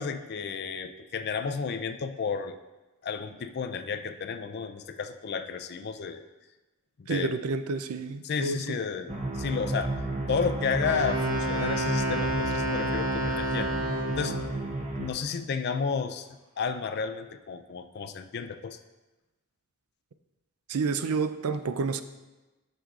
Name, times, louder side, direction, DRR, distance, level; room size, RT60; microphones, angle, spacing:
voice 1, 0.0-2.5 3.0-6.3 7.0-7.4 8.2-9.9 10.3-13.7 14.1-14.4 15.0-16.3 16.6-18.8, left 5 dB, 50° left, 9 dB, 0.4 m, -32 dB
voice 2, 7.1-8.6 20.7-22.0, right 4 dB, 85° right, 10 dB, 0.5 m, -29 dB
sound 1, 9.1-15.1, right 2 dB, 30° right, 0.8 m, -32 dB
Wind instrument woodwind instrument, 10.8-14.5, right 1 dB, 60° right, 1.3 m, -30 dB
10.0 x 6.2 x 2.4 m, 1.1 s
head